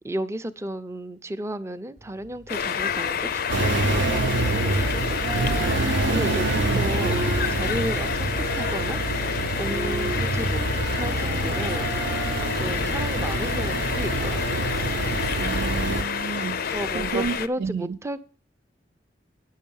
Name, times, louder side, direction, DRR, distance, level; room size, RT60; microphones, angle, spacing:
voice 1, 0.0-9.0 9.6-10.6 10.9-11.9 12.6-14.7 16.5-18.2, right 1 dB, 15° right, 0.6 m, -34 dB
sound 1, 2.0-4.8 5.1-13.3, right 3 dB, 45° right, 0.8 m, -36 dB
sound 2, 2.5-17.5, left 7 dB, 55° left, 0.5 m, -29 dB
sound 3, 3.5-16.0, right 2 dB, 85° right, 0.8 m, -26 dB
voice 2, 6.1-6.8 15.4-16.7 16.9-18.0, right 5 dB, 65° right, 0.4 m, -31 dB
9.9 x 6.5 x 7.0 m
head